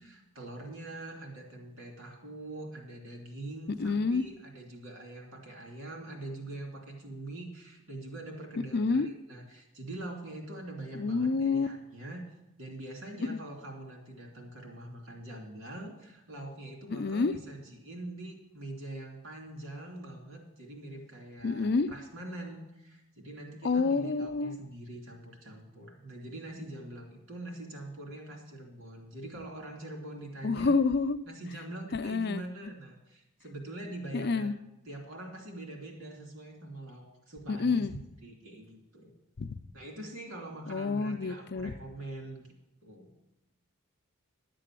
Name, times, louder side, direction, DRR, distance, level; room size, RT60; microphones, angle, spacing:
voice 1, 0.0-12.2 12.6-30.7 31.3-34.5 34.8-39.1 39.7-42.5 42.8-43.1, right 2 dB, 65° right, 0 dB, 2.9 m, -44 dB
voice 2, 3.8-4.2 8.7-9.1 10.9-11.7 13.3-13.4 16.9-17.3 21.4-21.9 23.6-24.6 30.4-31.2 31.9-32.4 34.1-34.5 37.5-37.9 39.4-39.6 40.7-41.8, left 4 dB, 50° left, 11 dB, 0.5 m, -28 dB
11.5 x 7.6 x 7.6 m, 0.93 s
head